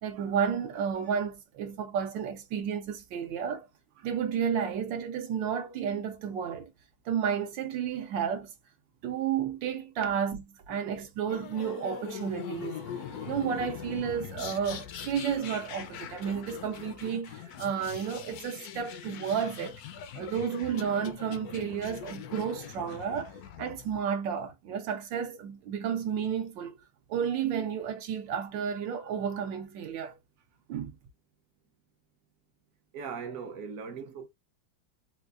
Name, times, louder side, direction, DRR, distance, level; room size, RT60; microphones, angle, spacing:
voice 1, 0.0-3.6 4.0-6.7 7.1-8.5 9.0-19.8 20.1-23.3 23.6-26.8 27.1-30.2 30.7-30.9, right 7 dB, 80° right, 1.4 m, -32 dB
sound 1, 11.3-24.0, left 8 dB, 70° left, 1.0 m, -42 dB
voice 2, 32.9-34.3, right 6 dB, 60° right, 0.9 m, -39 dB
4.4 x 2.3 x 2.4 m
omnidirectional pair, 2.0 m